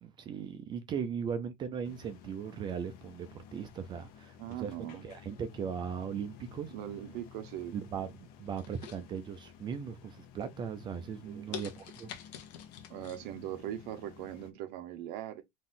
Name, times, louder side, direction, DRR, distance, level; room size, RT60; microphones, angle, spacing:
voice 1, 0.0-6.7 7.7-12.1, right 7 dB, 20° right, 0.4 m, -38 dB
sound 1, 1.8-14.5, left 9 dB, 45° left, 0.8 m, -54 dB
voice 2, 4.4-5.0 6.7-7.7 11.2-11.5 12.9-15.4, right 12 dB, 50° right, 0.9 m, -40 dB
sound 2, 8.6-9.6 10.0-10.4 10.9-11.0 11.5-13.2 13.6-13.7, left 10 dB, 85° left, 1.1 m, -45 dB
4.1 x 2.6 x 3.6 m
supercardioid pair, 160°, 21 cm